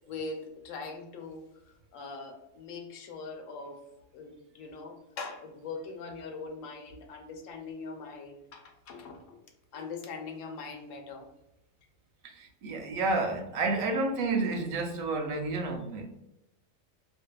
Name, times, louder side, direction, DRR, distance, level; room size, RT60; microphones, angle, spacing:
voice 1, 0.1-3.8 4.1-9.4 9.7-11.3, left 4 dB, 75° left, 3 dB, 0.9 m, -42 dB
voice 2, 12.2-16.2, right 3 dB, 85° right, 3 dB, 1.0 m, -30 dB
2.6 x 2.3 x 2.3 m, 0.89 s
omnidirectional pair, 1.4 m